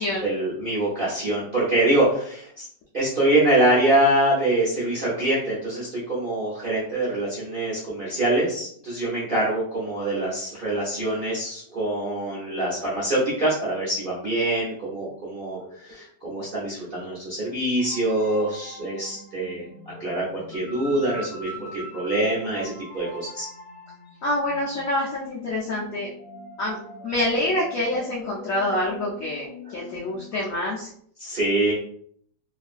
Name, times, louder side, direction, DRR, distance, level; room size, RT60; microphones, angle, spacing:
voice 1, 0.2-2.7 2.9-23.5 31.2-31.7, right 1 dB, 60° right, -8 dB, 0.5 m, -24 dB
sound 1, 17.8-30.5, left 1 dB, 55° left, 1.0 m, -43 dB
voice 2, 24.2-26.1 26.6-26.8 27.0-30.9, left 1 dB, 80° left, -4 dB, 0.7 m, -26 dB
3.0 x 2.5 x 2.4 m, 0.64 s
omnidirectional pair, 2.0 m